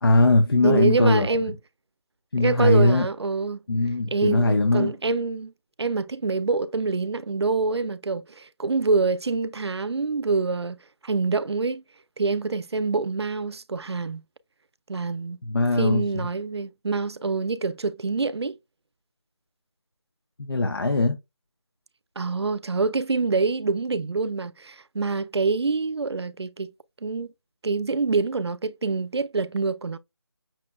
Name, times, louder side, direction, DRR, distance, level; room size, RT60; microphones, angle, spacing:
voice 1, 0.0-1.3 2.3-3.1 3.7-4.9 15.4-16.3 20.4-21.2, left 2 dB, 60° left, 0.9 m, -20 dB
voice 2, 0.6-1.5 2.4-3.6 4.1-5.5 5.8-11.8 12.2-14.2 14.9-15.4 15.8-18.6 22.2-26.7 27.0-27.3 27.6-30.0, right 4 dB, 75° right, 0.5 m, -26 dB
5.9 x 2.3 x 3.1 m
figure-of-eight pair, 170°, 14 cm